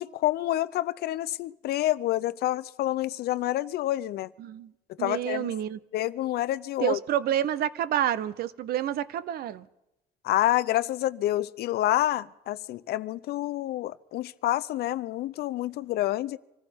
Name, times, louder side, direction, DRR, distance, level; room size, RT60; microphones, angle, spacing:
voice 1, 0.0-4.3 5.0-5.5 5.9-7.0 10.2-16.4, left 14 dB, 70° left, 0.6 m, -28 dB
voice 2, 4.4-4.7 5.0-5.8 6.8-9.7, right 11 dB, 65° right, 0.7 m, -28 dB
26.0 x 15.0 x 3.6 m
cardioid pair, 110°, 17 cm